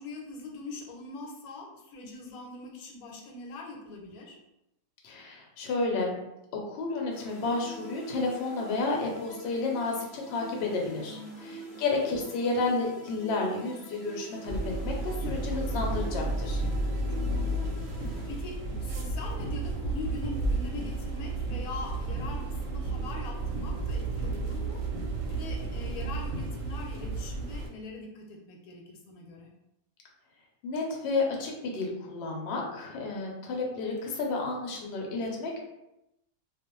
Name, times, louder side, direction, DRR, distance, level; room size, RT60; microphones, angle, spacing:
voice 1, 0.0-4.4 10.9-11.8 16.6-17.0 17.3-17.5 18.0-24.8 25.3-29.5 32.9-33.1, left 3 dB, 85° left, 0 dB, 1.1 m, -42 dB
voice 2, 5.0-6.2 6.7-16.6 30.6-35.6, left 3 dB, 60° left, -1 dB, 0.7 m, -31 dB
sound 1, 7.1-19.0, right 2 dB, ahead, 0.5 m, -47 dB
sound 2, 14.5-27.7, right 2 dB, 70° right, 0.9 m, -32 dB
2.4 x 2.0 x 2.9 m, 0.88 s
omnidirectional pair, 1.5 m